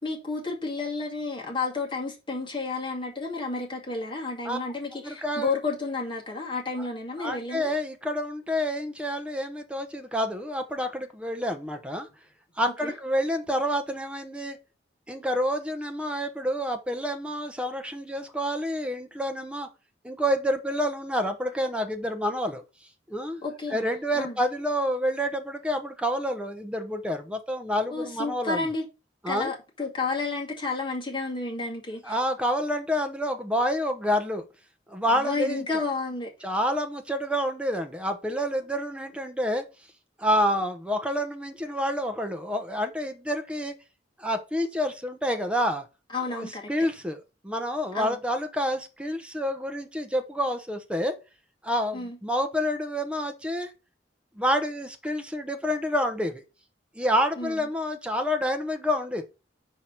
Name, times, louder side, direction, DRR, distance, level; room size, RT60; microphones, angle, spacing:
voice 1, 0.0-7.7 12.8-12.9 23.4-23.9 24.1-24.4 27.9-28.8 29.3-32.2 35.1-36.3 46.1-46.7 47.9-48.2 51.9-52.2 57.4-57.7, left 3 dB, 30° left, 2.1 m, -31 dB
voice 2, 5.0-5.5 6.8-6.9 7.2-12.1 12.6-14.6 15.1-19.7 20.0-22.6 23.1-23.4 23.7-28.7 29.2-29.5 32.0-34.5 34.9-35.6 36.4-39.6 40.2-43.7 44.2-45.9 46.3-51.1 51.6-53.7 54.3-56.4 56.9-59.2, equal, 5° right, 0.8 m, -28 dB
4.8 x 4.6 x 5.7 m
head